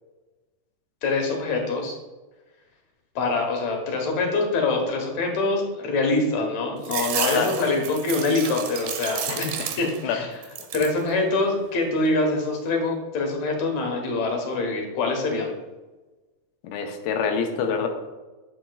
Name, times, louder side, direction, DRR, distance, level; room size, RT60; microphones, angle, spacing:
voice 1, 1.0-1.9 3.2-9.5 9.8-10.3 10.7-15.5, left 3 dB, 60° left, 2 dB, 2.1 m, -24 dB
sound 1, 6.8-10.1 10.4-11.0 11.5-12.2, right 8 dB, 85° right, 2.8 m, -31 dB
voice 2, 9.3-9.7 10.0-10.2 16.6-17.9, left 6 dB, 90° left, 4 dB, 2.7 m, -26 dB
8.6 x 7.7 x 2.3 m, 1.2 s
omnidirectional pair, 4.2 m